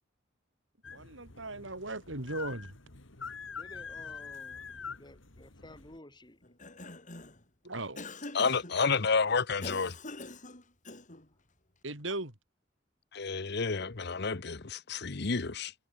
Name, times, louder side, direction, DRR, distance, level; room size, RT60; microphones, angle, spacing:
sound 1, 0.8-6.0, left 5 dB, 85° left, 2.6 m, -45 dB
voice 1, 0.9-2.8 7.6-8.1 11.8-12.3, right 2 dB, 80° right, 6.5 m, -38 dB
voice 2, 3.5-6.4, left 1 dB, 25° left, 4.1 m, -53 dB
Cough, 6.4-7.4 8.0-8.8 9.6-11.3, left 2 dB, 40° left, 6.9 m, -44 dB
voice 3, 8.3-9.9 13.1-15.7, left 5 dB, 60° left, 1.1 m, -30 dB
head